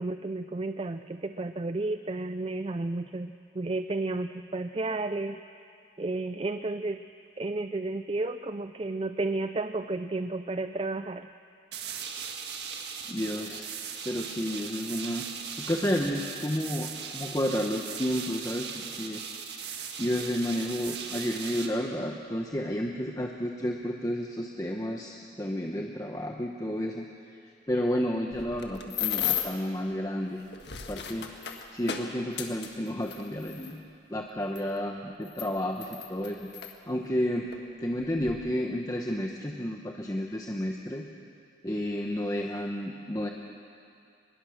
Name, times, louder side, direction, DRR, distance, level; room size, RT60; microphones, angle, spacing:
voice 1, 0.0-5.4 6.0-7.0 7.4-11.3, right 2 dB, 30° right, 10 dB, 0.4 m, -32 dB
sound 1, 11.7-21.7, right 6 dB, 70° right, 1.8 m, -39 dB
voice 2, 13.1-13.7 14.0-15.2 15.6-19.2 20.0-27.1 27.7-30.4 30.9-31.3 31.7-33.8 34.1-36.5 36.9-37.5 37.8-41.1 41.6-43.3, equal, 20° left, 1 dB, 0.9 m, -31 dB
sound 2, 28.3-29.7 30.4-33.7 34.6-34.7 35.2-36.7 37.5-37.6 38.0-38.3, left 9 dB, 75° left, 1.6 m, -34 dB
23.5 x 21.0 x 6.4 m, 2.5 s
head